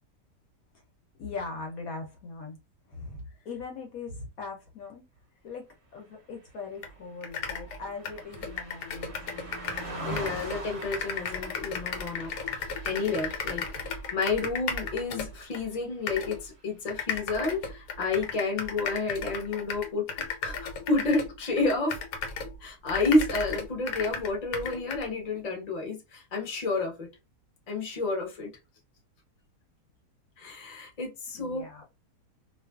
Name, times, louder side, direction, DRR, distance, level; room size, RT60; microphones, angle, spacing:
voice 1, 1.2-2.6 2.8-5.0 5.4-5.6 5.9-9.4 13.5-13.7 31.3-31.8, left 4 dB, 65° left, 1.0 m, -40 dB
Car passing by, 6.4-16.0 16.4-16.6, right 1 dB, 35° right, 0.5 m, -43 dB
sound 1, 6.8-6.9 7.2-9.9 10.2-15.6 16.1-16.4 16.9-22.6 22.9-25.1, left 5 dB, 85° left, 1.2 m, -35 dB
voice 2, 10.0-12.3 12.8-22.0 22.6-27.1 27.7-28.5 30.4-31.8, left 3 dB, 35° left, 0.7 m, -30 dB
2.6 x 2.4 x 2.2 m
omnidirectional pair, 1.8 m